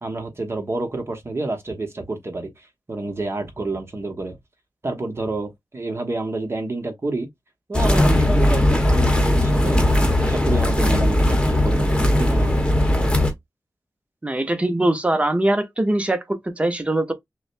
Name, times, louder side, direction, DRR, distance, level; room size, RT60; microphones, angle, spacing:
voice 1, 0.0-4.4 4.8-7.3 7.7-12.6, right 2 dB, 35° right, 1.2 m, -29 dB
sound 1, 7.7-13.3, left 1 dB, 15° left, 1.1 m, -18 dB
voice 2, 14.2-17.1, right 1 dB, 15° right, 0.8 m, -22 dB
6.1 x 2.2 x 2.5 m
wide cardioid pair, 110°, 7 cm